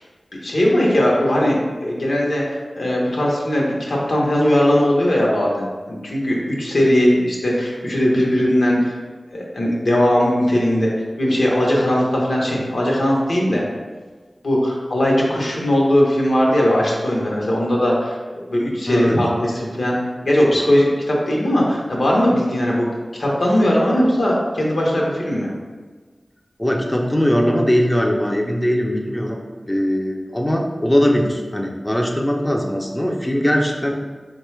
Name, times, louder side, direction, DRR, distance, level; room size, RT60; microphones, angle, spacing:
voice 1, 0.4-9.0 9.3-10.9 11.2-13.6 14.4-18.2 18.5-20.0 20.2-22.9 23.2-25.5, equal, 80° left, -3 dB, 0.7 m, -19 dB
voice 2, 18.9-19.2 26.6-29.4 29.7-33.9, equal, 15° left, 0 dB, 0.4 m, -20 dB
3.8 x 2.2 x 3.1 m, 1.4 s
cardioid pair, 40°, 0 cm